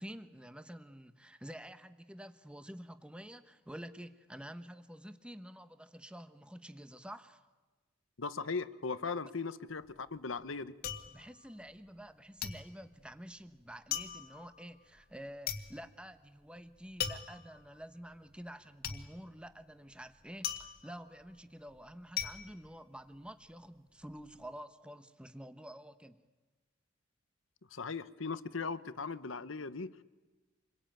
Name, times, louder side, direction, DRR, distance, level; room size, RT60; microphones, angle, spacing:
voice 1, 0.0-7.4 9.2-9.3 11.1-26.2, equal, 5° right, 10 dB, 1.1 m, -49 dB
voice 2, 8.2-10.8 27.7-30.0, left 4 dB, 75° left, 14 dB, 1.0 m, -38 dB
sound 1, 9.7-12.1 12.4-23.5 23.9-24.4, left 8 dB, 50° left, 2.0 m, -41 dB
27.5 x 22.5 x 9.1 m, 1.3 s
head